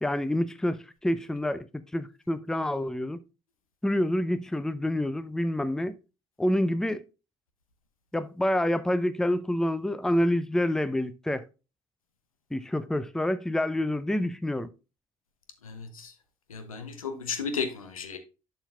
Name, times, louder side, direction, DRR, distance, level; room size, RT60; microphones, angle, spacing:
voice 1, 0.0-3.2 3.8-6.0 6.4-7.0 8.1-11.5 12.5-14.7, left 1 dB, 5° left, 0.6 m, -27 dB
voice 2, 15.6-16.1 16.5-18.2, left 5 dB, 80° left, 1.0 m, -34 dB
11.0 x 5.8 x 2.3 m
figure-of-eight pair, 55°, 18 cm